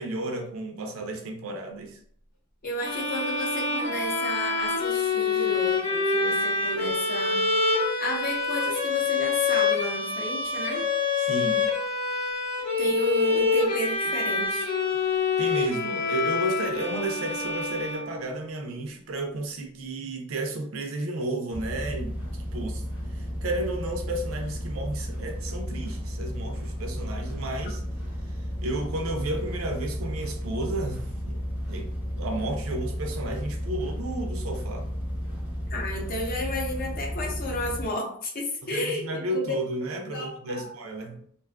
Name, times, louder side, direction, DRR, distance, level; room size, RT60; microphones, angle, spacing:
voice 1, 0.0-2.0 11.2-11.7 15.4-22.2 22.5-22.8 23.1-27.8 28.6-31.4 31.7-31.9 32.2-34.8 38.6-41.2, right 2 dB, 80° right, 0.5 m, -32 dB
voice 2, 2.6-7.4 8.0-10.8 12.8-14.7 35.7-39.0 39.3-39.6 40.1-40.7, left 1 dB, 45° left, 0.6 m, -32 dB
sound 1, 2.8-18.5, left 4 dB, 85° left, 0.9 m, -26 dB
sound 2, 21.5-37.9, equal, 10° right, 0.6 m, -33 dB
2.5 x 2.3 x 2.3 m
head